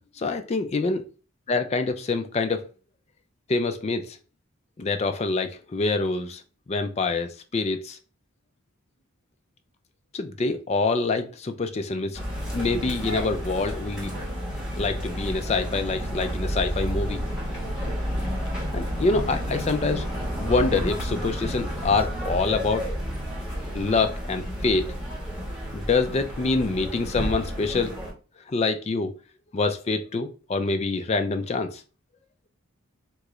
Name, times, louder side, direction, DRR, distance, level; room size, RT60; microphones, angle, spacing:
voice 1, 0.2-1.0 1.5-2.6 3.5-4.2 4.8-6.4 6.7-8.0 10.1-12.2 12.5-14.1 14.8-17.2 18.7-20.1 20.4-22.9 23.7-24.9 25.7-28.0 28.5-29.1 29.5-31.8, left 3 dB, 30° left, 0.3 m, -26 dB
sound 1, 12.1-28.1, equal, 5° right, 1.1 m, -31 dB
3.7 x 2.4 x 3.1 m
head